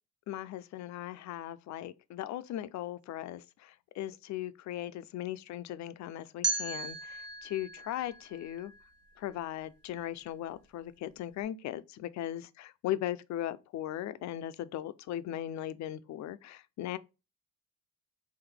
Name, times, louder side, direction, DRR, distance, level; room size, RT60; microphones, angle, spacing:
voice 1, 0.3-8.7 9.2-17.0, left 12 dB, 65° left, 0.4 m, -38 dB
sound 1, 6.4-9.4, right 3 dB, 55° right, 1.2 m, -37 dB
3.9 x 2.6 x 3.4 m
cardioid pair, 90°, 30 cm